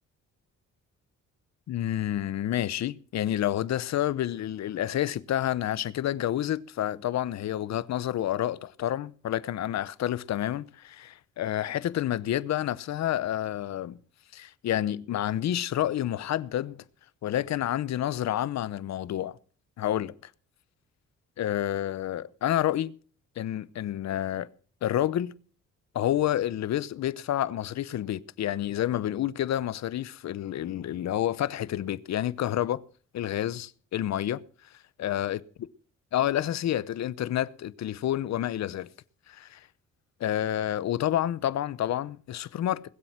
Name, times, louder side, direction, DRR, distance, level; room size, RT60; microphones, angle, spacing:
voice 1, 1.7-14.0 14.3-16.8 17.2-19.4 19.8-20.3 21.4-22.9 23.4-24.5 24.8-25.3 25.9-32.8 33.1-34.4 35.0-35.4 36.1-38.9 39.3-39.6 40.2-42.8, left 12 dB, 65° left, 0.9 m, -29 dB
21.0 x 7.7 x 6.0 m
cardioid pair, 90°, 30 cm